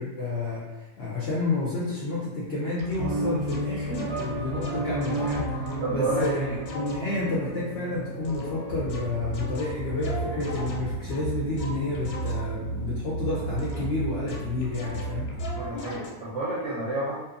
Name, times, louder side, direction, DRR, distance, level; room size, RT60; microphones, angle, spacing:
voice 1, 0.0-6.4 6.7-15.4, left 2 dB, 65° left, -6 dB, 0.6 m, -30 dB
sound 1, 2.8-3.1 3.5-7.2 8.2-12.7 13.6-14.0 14.3-16.1, left 2 dB, 85° left, 1.1 m, -40 dB
sound 2, 3.0-10.3, right 1 dB, 90° right, 1.1 m, -33 dB
voice 2, 5.8-6.6 15.5-17.2, right 2 dB, 60° right, -8 dB, 0.8 m, -30 dB
sound 3, 8.7-15.7, right 3 dB, 10° left, 1.0 m, -33 dB
2.6 x 2.2 x 2.5 m, 1.1 s
omnidirectional pair, 1.6 m